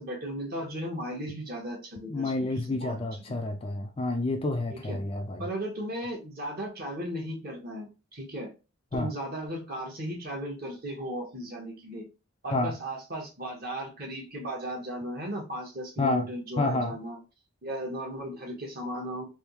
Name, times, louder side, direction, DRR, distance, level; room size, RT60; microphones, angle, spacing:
voice 1, 0.0-3.0 4.7-5.0 5.4-8.5 8.9-12.1 12.4-17.2 17.6-19.2, equal, 45° right, 1.2 m, -36 dB
voice 2, 2.1-5.5 8.9-9.1 12.5-12.8 16.0-16.3 16.6-17.0, left 2 dB, 25° left, 0.4 m, -29 dB
3.5 x 2.7 x 2.9 m
head